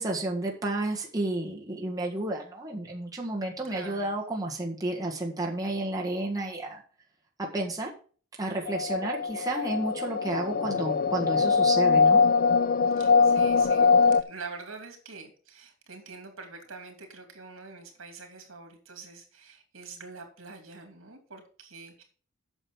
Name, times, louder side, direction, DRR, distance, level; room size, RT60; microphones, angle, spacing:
voice 1, 0.0-6.8 7.4-7.9 8.4-12.2, right 2 dB, 20° right, -1 dB, 1.7 m, -31 dB
voice 2, 3.6-4.2 13.0-22.0, right 4 dB, 75° right, 4 dB, 2.9 m, -45 dB
sound 1, 8.7-14.2, left 5 dB, 45° left, 0.4 m, -22 dB
8.9 x 6.5 x 6.3 m, 0.42 s
head